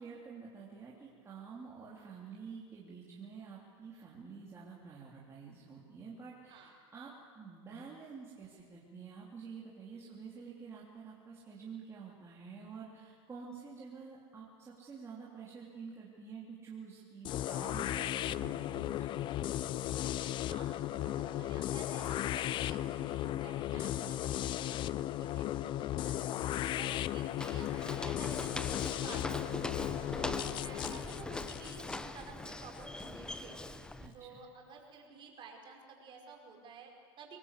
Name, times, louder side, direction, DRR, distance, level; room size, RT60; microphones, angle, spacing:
voice 1, 0.0-19.2 23.7-24.1 26.4-26.8 29.8-30.0 34.0-34.4, right 5 dB, 20° right, -5 dB, 3.2 m, -49 dB
voice 2, 10.0-10.3 18.3-18.9 20.5-26.3 26.7-29.6 30.1-33.7 34.1-37.4, right 5 dB, 35° right, 1 dB, 5.2 m, -52 dB
sound 1, 17.2-33.1, left 13 dB, 35° left, 0.6 m, -36 dB
Walk footsteps, 27.4-34.1, left 2 dB, 5° left, 0.9 m, -42 dB
25.0 x 19.5 x 8.2 m, 2.1 s
supercardioid pair, 130°, 15 cm